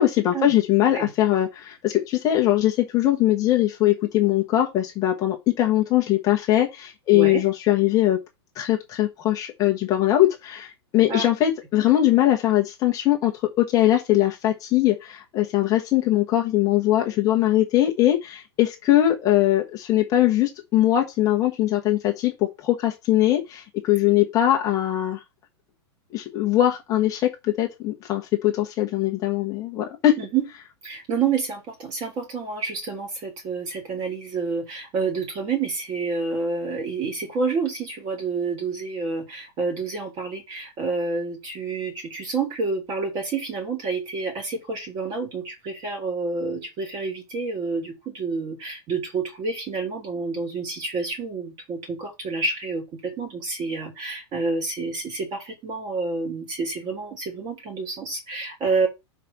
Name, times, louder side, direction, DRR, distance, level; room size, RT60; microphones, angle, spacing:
voice 1, 0.0-8.2 8.5-25.2 26.1-30.1, left 13 dB, 25° left, 1.2 m, -21 dB
voice 2, 7.1-7.4 11.1-11.3 30.2-30.5 30.8-58.9, right 4 dB, 25° right, 3.5 m, -28 dB
5.1 x 4.9 x 6.1 m
supercardioid pair, 160°, 15 cm